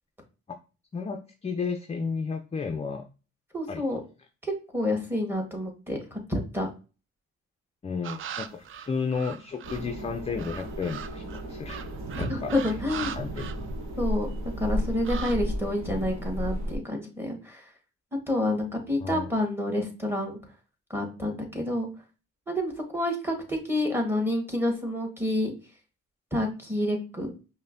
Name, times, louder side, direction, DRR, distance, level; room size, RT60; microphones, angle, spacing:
voice 1, 0.9-3.0 3.7-3.8 7.8-11.8 12.2-12.5 13.1-13.5 19.0-19.3, left 5 dB, 20° left, 5 dB, 0.4 m, -32 dB
voice 2, 3.5-4.0 4.4-6.7 12.1-13.1 14.0-14.3 14.6-17.6 18.3-20.4 20.9-21.9 22.5-25.5 26.3-27.3, left 1 dB, 5° right, 1 dB, 1.3 m, -28 dB
sound 1, 8.0-9.9 10.4-14.2 14.5-15.4, right 8 dB, 45° right, 0.4 m, -39 dB
sound 2, 9.6-16.8, equal, 65° right, 1.2 m, -34 dB
5.3 x 2.1 x 2.6 m, 0.32 s
cardioid pair, 90°, 30 cm